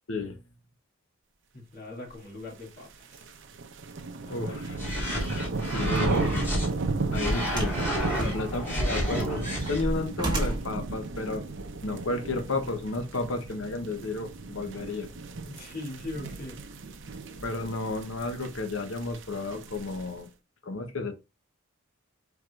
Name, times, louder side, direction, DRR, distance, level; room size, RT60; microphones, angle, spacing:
voice 1, 0.1-0.4 4.3-4.8 5.7-6.5 7.1-7.7 8.2-11.4 11.8-15.1 17.4-20.3 20.6-21.1, left 2 dB, 70° left, 0.9 m, -32 dB
voice 2, 1.5-3.2 4.2-4.6 8.0-9.1 15.5-16.8, left 2 dB, 50° left, 2.3 m, -41 dB
sound 1, 2.7-20.2, right 3 dB, 65° right, 0.7 m, -35 dB
sound 2, 4.7-6.7 7.1-9.8, equal, 10° left, 2.1 m, -30 dB
sound 3, 7.5-7.8 8.2-8.9 9.3-10.8 11.7-11.8, right 2 dB, 20° right, 1.3 m, -33 dB
4.7 x 4.6 x 2.4 m
head